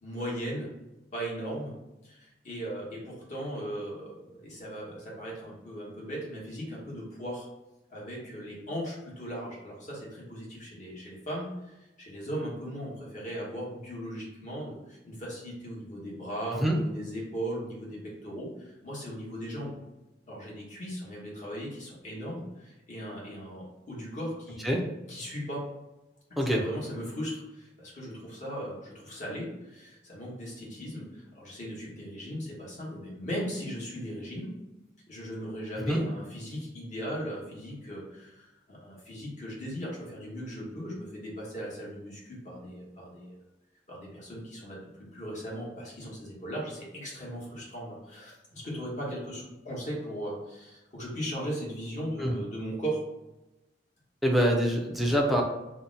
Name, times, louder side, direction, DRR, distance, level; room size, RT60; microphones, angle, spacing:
voice 1, 0.0-0.7 1.1-1.7 2.0-7.5 7.9-19.7 20.3-24.7 25.1-25.6 26.5-34.5 35.1-43.3 43.9-44.8 45.1-53.0, equal, 45° left, -4 dB, 1.1 m, -38 dB
voice 2, 54.2-55.4, equal, ahead, -1 dB, 0.4 m, -25 dB
2.8 x 2.1 x 3.8 m, 0.99 s
head